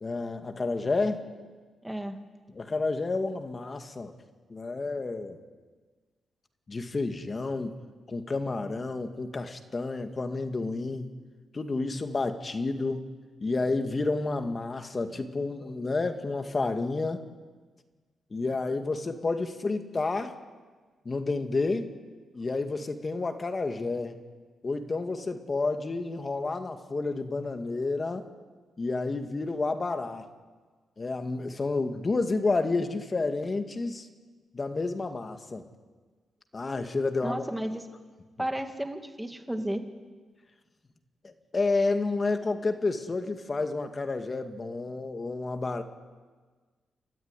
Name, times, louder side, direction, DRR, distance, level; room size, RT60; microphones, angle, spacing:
voice 1, 0.0-1.2 2.5-4.1 4.5-5.4 6.7-7.8 8.1-11.1 11.5-13.0 13.4-17.3 18.3-20.3 21.1-21.9 22.3-24.2 24.6-28.3 28.8-30.3 31.0-34.1 34.5-35.7 36.5-37.4 41.2-45.8, left 3 dB, 30° left, 7 dB, 2.0 m, -30 dB
voice 2, 1.8-2.2 37.2-37.8 38.4-39.9, right 1 dB, 5° right, 6 dB, 2.3 m, -33 dB
30.0 x 14.0 x 9.8 m, 1.4 s
cardioid pair, 95°, 0 cm